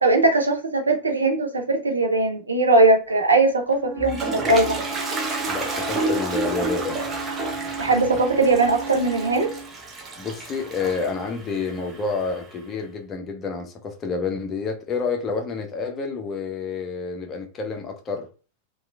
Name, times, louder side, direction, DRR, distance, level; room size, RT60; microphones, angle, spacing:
voice 1, 0.0-4.8 7.8-9.5, right 2 dB, 75° right, 0.5 m, -20 dB
Wind instrument woodwind instrument, 3.7-9.7, right 5 dB, 65° left, 0.7 m, -35 dB
Toilet flush, 3.7-12.6, right 2 dB, 25° right, 0.5 m, -31 dB
voice 2, 5.5-7.1 10.2-18.3, left 4 dB, 30° left, 0.5 m, -29 dB
2.9 x 2.3 x 2.3 m
figure-of-eight pair, 90°, 0 cm